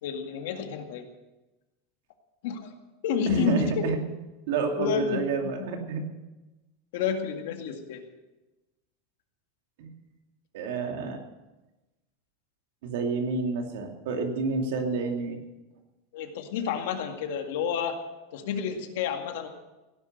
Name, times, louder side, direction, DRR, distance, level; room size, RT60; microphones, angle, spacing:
voice 1, 0.0-1.1 2.4-2.7 3.0-3.9 4.8-5.5 6.9-8.0 16.1-18.0 18.3-19.5, left 7 dB, 60° left, 5 dB, 2.1 m, -30 dB
voice 2, 3.3-4.0 4.5-6.1 9.8-9.9 10.5-11.2 12.8-15.4, right 4 dB, 65° right, 3 dB, 2.7 m, -29 dB
17.0 x 11.0 x 6.8 m, 1.1 s
supercardioid pair, 175°, 0 cm